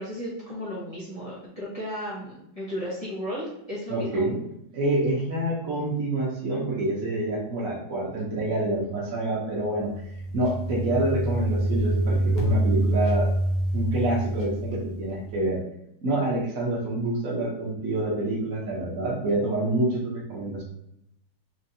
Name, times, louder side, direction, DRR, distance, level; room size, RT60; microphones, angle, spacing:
voice 1, 0.0-4.3, equal, 25° left, -9 dB, 0.9 m, -34 dB
voice 2, 3.9-4.4 4.7-9.9 10.3-13.3 13.7-15.6 16.0-20.6, right 1 dB, 55° right, -4 dB, 1.0 m, -27 dB
sound 1, 9.7-15.4, right 1 dB, 75° left, 1.8 m, -26 dB
4.3 x 2.9 x 2.6 m, 0.79 s
omnidirectional pair, 2.2 m